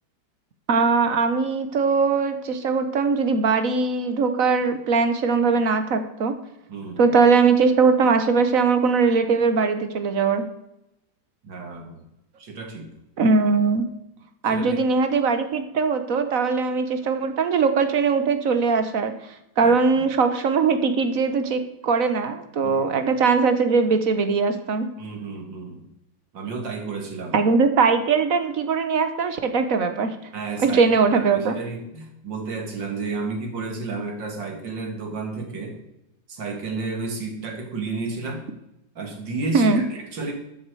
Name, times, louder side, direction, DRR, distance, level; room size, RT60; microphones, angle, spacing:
voice 1, 0.7-6.3 7.0-10.4 13.2-13.9 14.4-19.1 19.6-24.9 27.3-30.1 30.6-31.5 39.5-39.8, right 4 dB, 50° right, 9 dB, 1.4 m, -20 dB
voice 2, 6.7-7.1 11.4-12.0 12.4-12.9 14.4-14.8 19.6-20.0 22.6-22.9 25.0-25.9 26.3-27.3 30.3-30.8 31.1-35.8 36.3-38.4 38.9-40.3, right 3 dB, 70° right, 3 dB, 2.8 m, -32 dB
12.5 x 7.5 x 4.8 m, 0.86 s
omnidirectional pair, 2.1 m